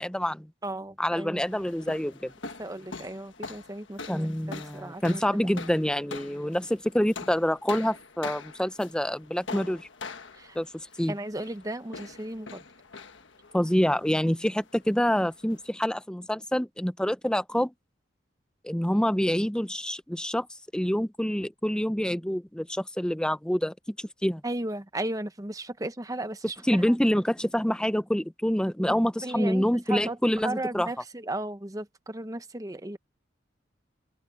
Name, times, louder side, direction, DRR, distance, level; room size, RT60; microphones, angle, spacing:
voice 1, 0.0-0.5 1.0-2.3 4.1-9.9 10.6-11.2 13.5-17.7 18.6-20.5 20.7-24.4 26.6-30.9, equal, 5° left, 0.6 m, -27 dB
voice 2, 0.6-1.6 2.6-5.2 10.3-10.6 11.1-12.6 24.4-26.6 28.8-28.9 29.2-30.2 30.4-33.0, right 1 dB, 20° right, 0.9 m, -35 dB
sound 1, 1.4-15.7, left 4 dB, 70° left, 1.4 m, -44 dB
open air
head